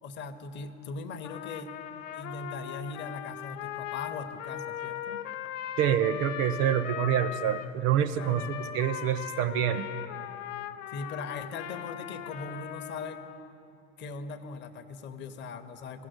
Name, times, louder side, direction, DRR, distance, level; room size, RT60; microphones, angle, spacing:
voice 1, 0.0-1.7 2.1-5.2 8.1-8.5 10.9-13.3 14.0-16.1, left 4 dB, 30° left, 9 dB, 0.6 m, -40 dB
Trumpet, 1.2-7.7 8.2-13.5, left 10 dB, 70° left, 0.5 m, -39 dB
voice 2, 5.8-9.9, right 10 dB, 35° right, 13 dB, 0.4 m, -27 dB
15.5 x 6.0 x 6.2 m, 2.7 s
figure-of-eight pair, 80°, 40 cm